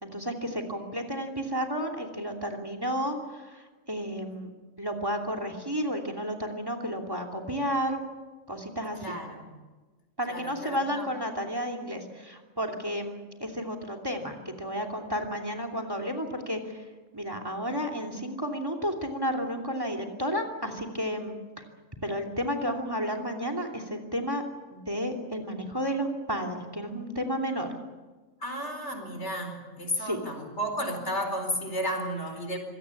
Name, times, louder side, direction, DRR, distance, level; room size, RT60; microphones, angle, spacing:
voice 1, 0.0-3.2 3.9-4.5 4.8-8.0 8.5-9.2 10.2-16.6 17.1-21.4 22.0-24.4 24.7-27.7 30.1-30.2, equal, 15° right, 5 dB, 2.9 m, -32 dB
voice 2, 9.0-9.4 10.3-11.1 28.4-32.6, equal, 55° left, 5 dB, 4.7 m, -33 dB
25.5 x 18.0 x 8.5 m, 1.3 s
omnidirectional pair, 1.4 m